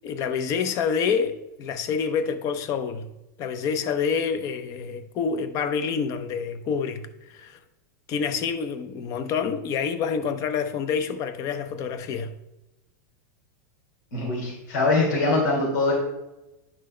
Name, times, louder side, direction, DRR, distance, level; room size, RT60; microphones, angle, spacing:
voice 1, 0.0-3.1 3.4-7.6 8.1-12.3, left 6 dB, 35° left, 0.7 m, -27 dB
voice 2, 14.1-15.9, left 2 dB, 85° left, 3.1 m, -23 dB
10.0 x 6.0 x 3.2 m
supercardioid pair, 150°, 10 cm